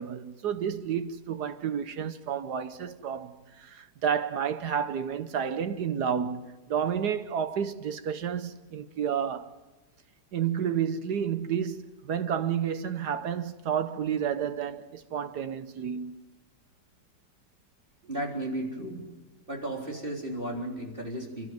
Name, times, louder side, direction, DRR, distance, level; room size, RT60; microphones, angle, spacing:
voice 1, 0.0-9.5 10.3-16.2, right 8 dB, 70° right, 1.5 m, -31 dB
voice 2, 18.1-19.0 19.5-21.5, right 1 dB, 30° right, 4.0 m, -34 dB
29.5 x 13.0 x 9.4 m
omnidirectional pair, 1.9 m